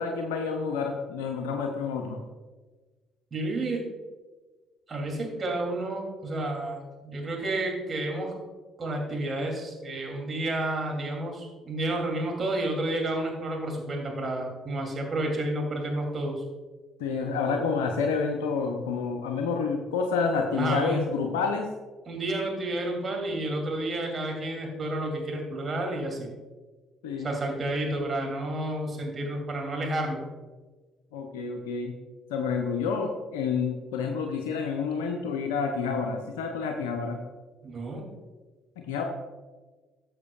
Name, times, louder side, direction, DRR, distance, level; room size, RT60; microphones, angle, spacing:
voice 1, 0.0-2.2 17.0-21.7 27.0-27.3 31.1-32.0 32.3-37.2 38.8-39.0, left 5 dB, 80° left, 3 dB, 0.6 m, -29 dB
voice 2, 3.3-3.9 4.9-8.3 8.8-16.4 20.6-21.0 22.1-26.3 27.2-30.2 37.6-38.0, right 1 dB, 35° right, 0 dB, 2.9 m, -30 dB
13.0 x 7.2 x 2.4 m, 1.3 s
hypercardioid pair, 50°, 0 cm